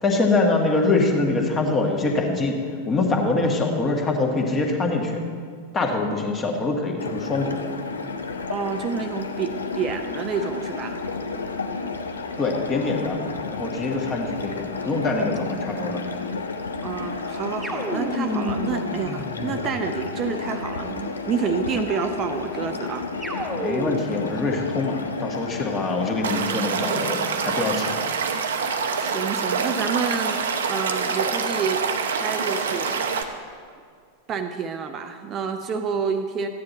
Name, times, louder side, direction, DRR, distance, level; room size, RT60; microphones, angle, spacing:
voice 1, 0.0-2.6 2.9-5.3 5.7-7.7 12.4-13.2 13.5-16.0 23.6-28.0, left 3 dB, 20° left, 1 dB, 1.6 m, -24 dB
sound 1, 7.0-26.4, left 4 dB, 75° left, 0.7 m, -31 dB
voice 2, 8.5-11.0 16.8-23.6 29.0-30.4 30.7-33.2 34.3-36.5, right 6 dB, 30° right, 7 dB, 0.6 m, -29 dB
sound 2, 17.6-20.1 23.2-24.2, equal, 5° right, 1.4 m, -30 dB
Stream / Liquid, 26.2-33.2, right 5 dB, 65° right, 0.8 m, -26 dB
14.0 x 9.5 x 4.1 m, 2.1 s
figure-of-eight pair, 90°, 0 cm